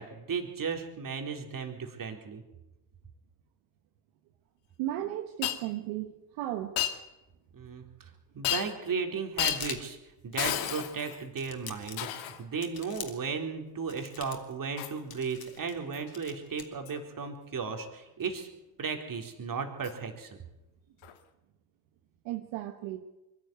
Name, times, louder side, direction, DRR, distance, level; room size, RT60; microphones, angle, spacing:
voice 1, 0.0-2.4 7.5-7.9 8.3-10.0 10.2-18.5 18.8-20.3, right 5 dB, 45° right, 4 dB, 4.0 m, -35 dB
voice 2, 4.8-6.8 22.2-23.0, right 13 dB, 75° right, 6 dB, 1.4 m, -35 dB
Shatter, 5.4-5.6 6.8-7.0 8.4-8.9 9.4-9.7 10.4-11.2 12.0-12.4 14.8-15.0 15.9-16.1 16.9-17.0 19.8-19.9 21.0-21.1, left 12 dB, 70° left, 2.0 m, -32 dB
sound 1, 9.3-10.0 10.3-10.9 11.4-12.1 12.6-13.3 13.9-14.5 15.1-15.8 16.1-16.7, left 7 dB, 50° left, 3.4 m, -43 dB
22.5 x 12.0 x 9.5 m, 0.98 s
hypercardioid pair, 70°, 48 cm